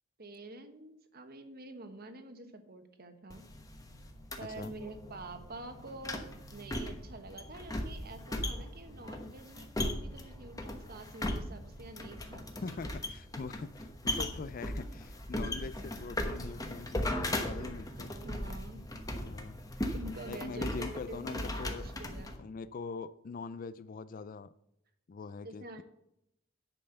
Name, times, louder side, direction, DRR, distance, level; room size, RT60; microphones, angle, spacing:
voice 1, 0.2-3.4 4.4-12.8 18.2-18.8 19.9-22.3 25.4-25.8, right 2 dB, 50° right, 7 dB, 1.1 m, -47 dB
sound 1, 3.3-22.4, left 1 dB, 20° left, 1.0 m, -38 dB
voice 2, 4.4-4.7 12.6-18.1 19.3-19.6 20.3-21.9 22.4-24.5 25.1-25.8, left 4 dB, 45° left, 14 dB, 0.4 m, -43 dB
10.0 x 5.4 x 6.8 m, 0.81 s
head